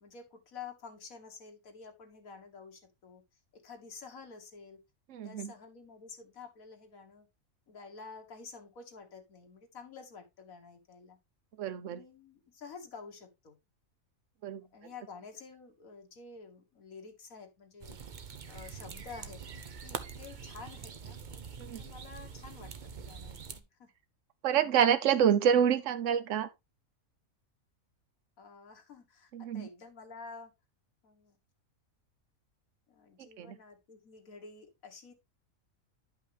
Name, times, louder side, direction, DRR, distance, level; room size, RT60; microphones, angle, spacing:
voice 1, 0.0-3.2 3.5-4.8 5.2-7.3 7.7-11.2 11.8-13.6 14.7-18.0 18.5-19.4 19.8-21.2 21.8-23.9 28.4-30.5 31.0-31.4 32.9-35.1, left 5 dB, 80° left, 1.9 m, -50 dB
voice 2, 5.1-5.5 11.6-12.0 14.4-14.6 21.6-21.8 24.4-26.5 29.3-29.7 33.4-33.6, right 8 dB, 65° right, 1.1 m, -27 dB
sound 1, 17.8-23.6, right 6 dB, 45° right, 0.7 m, -44 dB
10.5 x 5.6 x 3.3 m
omnidirectional pair, 1.4 m